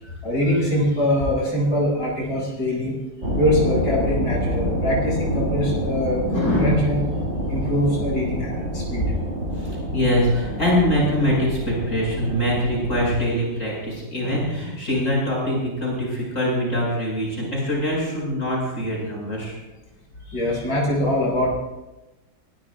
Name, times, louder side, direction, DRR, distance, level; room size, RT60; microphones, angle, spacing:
voice 1, 0.2-3.0 3.3-7.0 7.5-9.1 14.2-14.4 20.3-21.5, left 1 dB, 70° left, -4 dB, 6.9 m, -23 dB
sound 1, 3.2-13.2, equal, 40° right, 4.8 m, -27 dB
voice 2, 9.5-19.5, equal, 40° left, -4 dB, 8.5 m, -23 dB
24.0 x 20.5 x 2.6 m, 1.1 s
omnidirectional pair, 2.1 m